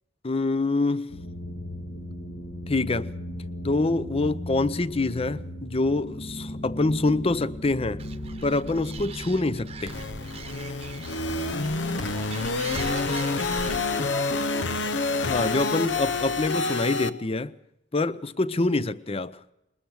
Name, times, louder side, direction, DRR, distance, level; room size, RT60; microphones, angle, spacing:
voice 1, 0.2-1.2 2.7-3.1 3.6-8.0 8.4-10.0 15.2-17.5 17.9-19.4, left 2 dB, 35° left, 0.7 m, -25 dB
sound 1, 1.1-14.7, left 1 dB, 65° left, 2.1 m, -38 dB
Animal, 8.0-13.8, right 4 dB, 35° right, 1.0 m, -41 dB
sound 2, 9.9-17.1, left 3 dB, 80° left, 0.9 m, -28 dB
voice 2, 11.3-15.3, left 1 dB, 10° left, 1.2 m, -43 dB
21.0 x 20.5 x 6.3 m
head